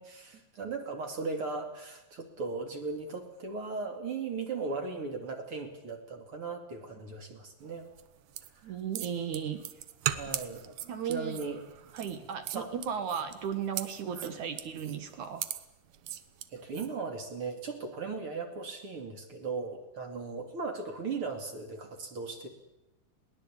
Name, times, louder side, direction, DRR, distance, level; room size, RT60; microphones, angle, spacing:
voice 1, 0.0-7.9 10.1-10.8 11.1-11.6 12.5-12.7 14.1-14.3 16.5-22.5, right 4 dB, 40° right, 5 dB, 2.6 m, -37 dB
sound 1, 7.9-16.9, right 12 dB, 80° right, 1.6 m, -39 dB
voice 2, 8.6-9.6 10.8-11.4 11.9-15.4, right 8 dB, 60° right, 9 dB, 2.3 m, -35 dB
21.5 x 18.5 x 8.7 m, 0.97 s
omnidirectional pair, 4.6 m